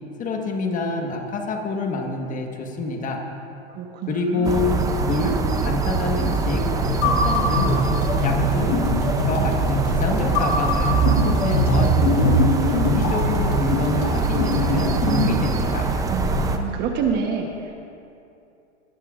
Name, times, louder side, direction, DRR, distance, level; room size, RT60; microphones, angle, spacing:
voice 1, 0.2-3.2 4.1-4.7 5.0-6.6 7.0-7.7 8.2-8.7 9.2-12.3 12.8-15.9, left 3 dB, 20° left, 2 dB, 1.4 m, -27 dB
voice 2, 3.8-4.5 11.7-12.5 16.1-17.9, right 6 dB, 30° right, 3 dB, 1.1 m, -28 dB
sound 1, 4.4-16.6, right 4 dB, 10° right, 0.5 m, -23 dB
sound 2, 6.8-15.3, left 3 dB, 45° left, 3.1 m, -24 dB
20.0 x 13.5 x 2.5 m, 2.6 s
hypercardioid pair, 135°, 35 cm